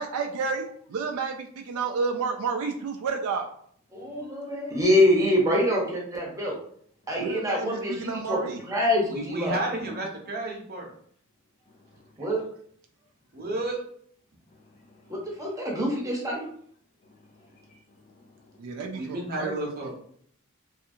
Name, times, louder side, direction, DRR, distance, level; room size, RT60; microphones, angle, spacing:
voice 1, 0.0-3.5 7.2-8.6 18.6-20.0, right 5 dB, 75° right, 3 dB, 0.3 m, -31 dB
voice 2, 3.9-6.6 7.1-8.4 8.7-9.5 12.2-12.4 15.1-16.4, left 1 dB, 15° right, -2 dB, 0.7 m, -25 dB
voice 3, 9.1-10.9 13.3-13.8 18.9-20.0, right 1 dB, 45° right, 0 dB, 0.7 m, -31 dB
voice 4, 11.7-12.0 14.6-15.3 17.1-17.8 18.0-18.6, left 2 dB, 35° left, 0 dB, 0.3 m, -58 dB
2.7 x 2.4 x 2.6 m, 0.62 s
head